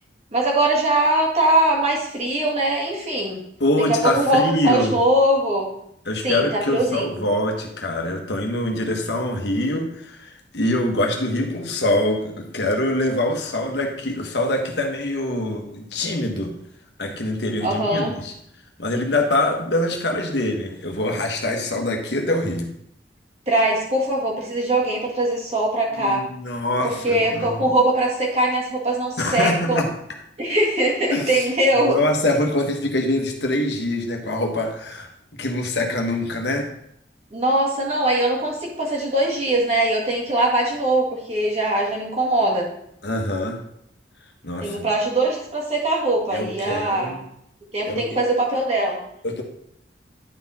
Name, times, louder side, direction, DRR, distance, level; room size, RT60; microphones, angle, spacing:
voice 1, 0.3-3.4 4.0-5.7 6.2-7.3 17.6-18.1 23.5-26.2 26.8-29.8 30.4-32.0 37.3-42.7 44.6-47.2 47.7-49.0, right 1 dB, 35° right, -2 dB, 2.0 m, -21 dB
voice 2, 3.6-4.9 6.1-16.5 17.0-18.3 18.8-22.7 25.9-27.7 29.2-29.9 31.1-31.5 31.8-35.1 35.4-36.7 43.0-43.6 44.4-44.9 46.3-47.2 47.8-48.2 49.2-49.4, left 1 dB, 75° left, 3 dB, 1.3 m, -24 dB
10.5 x 4.3 x 4.2 m, 0.73 s
head